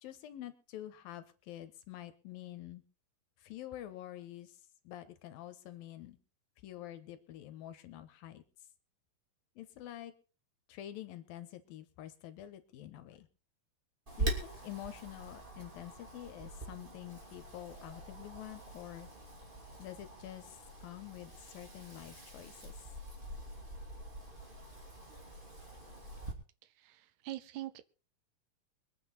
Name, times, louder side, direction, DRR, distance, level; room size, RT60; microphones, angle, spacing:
voice 1, 0.0-2.8 3.4-4.6 4.8-6.2 6.6-8.4 9.6-10.1 10.7-13.3 14.2-19.1 19.8-22.7, left 12 dB, 80° left, 11 dB, 2.9 m, -47 dB
Wind, 14.1-26.3, right 2 dB, 15° right, 2.4 m, -44 dB
voice 2, 26.6-27.9, right 15 dB, 75° right, 13 dB, 1.7 m, -44 dB
23.5 x 8.9 x 4.2 m, 0.36 s
omnidirectional pair, 4.2 m